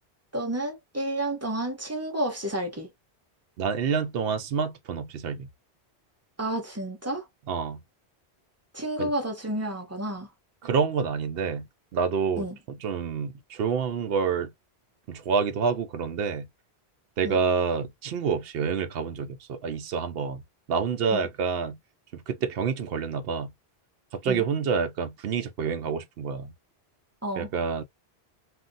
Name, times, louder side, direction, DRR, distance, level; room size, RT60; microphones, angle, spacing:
voice 1, 0.3-2.9 6.4-7.3 8.7-10.3 12.4-12.6 17.2-17.4 21.1-21.3 24.2-24.4 27.2-27.5, right 1 dB, 15° right, 0.8 m, -30 dB
voice 2, 3.6-5.5 7.5-7.8 9.0-9.1 10.6-11.7 11.9-14.5 15.1-16.5 17.2-20.4 20.7-21.8 22.1-23.5 24.1-26.5 27.4-27.8, right 6 dB, 70° right, 0.8 m, -28 dB
2.4 x 2.1 x 3.9 m
omnidirectional pair, 1.1 m